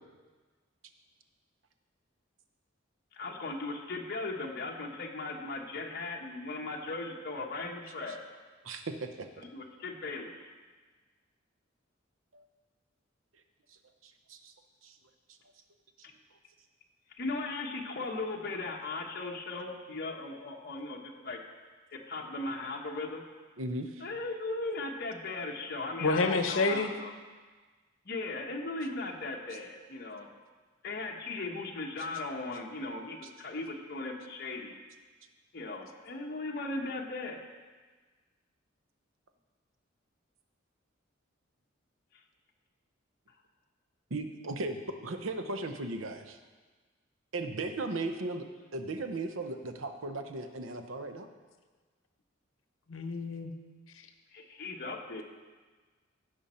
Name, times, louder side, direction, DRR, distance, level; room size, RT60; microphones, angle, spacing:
voice 1, 3.1-8.2 9.4-10.3 17.2-21.4 21.9-23.2 24.0-27.1 28.0-30.3 30.8-34.7 35.5-37.4 54.3-55.2, left 3 dB, 55° left, 1 dB, 1.1 m, -37 dB
voice 2, 8.6-9.3 12.3-12.4 14.0-14.5 14.8-15.0 23.6-24.1 44.1-44.7 45.0-46.2 47.3-48.4 48.7-51.3, right 2 dB, 90° right, 7 dB, 0.8 m, -36 dB
voice 3, 26.0-26.9 52.9-53.5, left 3 dB, 90° left, 6 dB, 0.9 m, -28 dB
16.0 x 5.3 x 4.3 m, 1.4 s
head